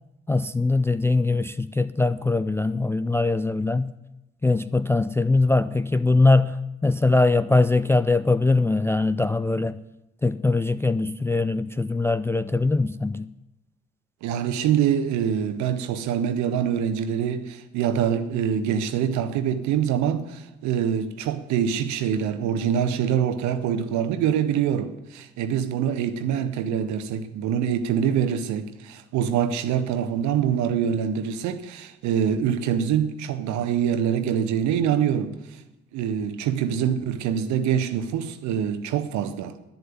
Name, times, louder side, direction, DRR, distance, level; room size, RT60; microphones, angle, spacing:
voice 1, 0.3-4.0 4.4-9.8 10.2-13.3, left 3 dB, 10° left, 0.4 m, -22 dB
voice 2, 14.2-35.6 35.9-39.6, right 8 dB, 60° right, 1.2 m, -25 dB
11.0 x 9.8 x 9.6 m
figure-of-eight pair, 45°, 32 cm